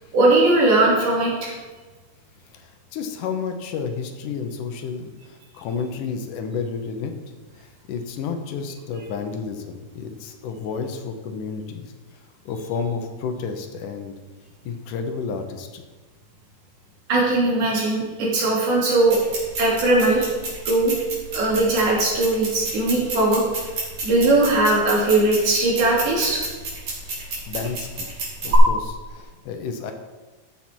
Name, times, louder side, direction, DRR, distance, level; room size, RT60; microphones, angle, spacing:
voice 1, 0.1-1.5 17.1-19.2 19.6-20.3 20.7-20.9 21.3-23.4 24.0-26.4, right 2 dB, 70° right, -4 dB, 4.1 m, -19 dB
voice 2, 2.5-7.1 7.6-14.1 14.7-15.8 27.0-27.2 27.5-28.1 28.4-29.9, left 5 dB, 75° left, 6 dB, 2.5 m, -31 dB
sound 1, 19.1-28.6, right 3 dB, 55° right, 4.0 m, -31 dB
13.5 x 7.1 x 4.5 m, 1.3 s
omnidirectional pair, 3.7 m